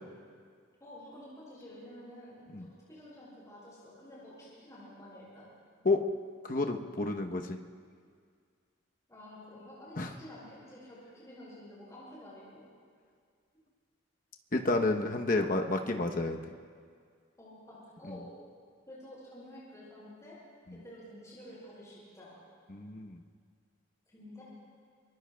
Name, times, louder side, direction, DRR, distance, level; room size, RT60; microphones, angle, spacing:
voice 1, 0.8-5.5 9.1-12.6 15.3-15.5 17.4-18.3 18.9-20.4 20.8-22.4 24.1-24.4, left 1 dB, 15° left, -9 dB, 5.4 m, -50 dB
voice 2, 6.4-7.6 10.0-10.1 14.5-16.4 18.1-18.2 20.7-20.8 22.7-23.2, left 2 dB, 40° left, 4 dB, 0.9 m, -30 dB
25.5 x 22.0 x 2.3 m, 2.1 s
head